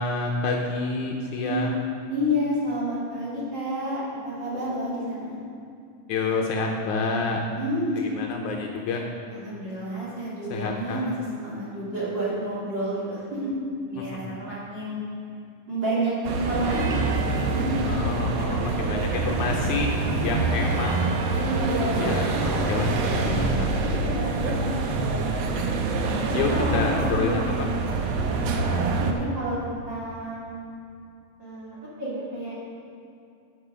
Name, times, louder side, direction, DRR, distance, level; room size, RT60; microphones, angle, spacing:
voice 1, 0.0-1.7 6.1-7.4 8.0-9.0 10.5-11.0 14.0-14.4 17.9-19.9 20.2-21.2 22.0-23.7 26.3-27.7, left 4 dB, 75° left, 1 dB, 2.0 m, -28 dB
voice 2, 1.4-1.8 2.1-5.4 7.5-8.0 9.3-13.5 13.9-15.0 15.7-17.8 18.6-18.7 19.2-19.3 20.1-20.2 21.4-22.2 23.7-25.3 26.2-27.5 28.1-28.5 29.0-30.6 31.4-32.6, equal, 35° right, -8 dB, 3.2 m, -30 dB
sound 1, 16.2-29.1, right 3 dB, 70° right, 1.6 m, -25 dB
12.0 x 7.6 x 5.0 m, 2.4 s
omnidirectional pair, 3.9 m